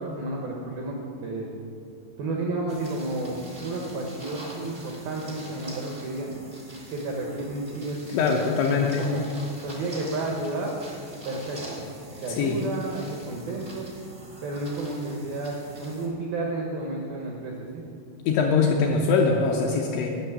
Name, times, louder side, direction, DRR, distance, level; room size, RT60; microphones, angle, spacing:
voice 1, 0.0-1.5 2.2-6.5 6.9-9.2 9.6-10.7 11.2-11.9 12.2-13.9 14.4-17.8, right 2 dB, 80° right, -1 dB, 2.0 m, -32 dB
sound 1, 2.7-16.1, right 1 dB, 55° right, 0.8 m, -43 dB
voice 2, 8.1-9.0 12.4-12.6 18.3-20.1, left 5 dB, 80° left, 0 dB, 2.7 m, -22 dB
10.5 x 6.4 x 9.0 m, 2.5 s
omnidirectional pair, 6.0 m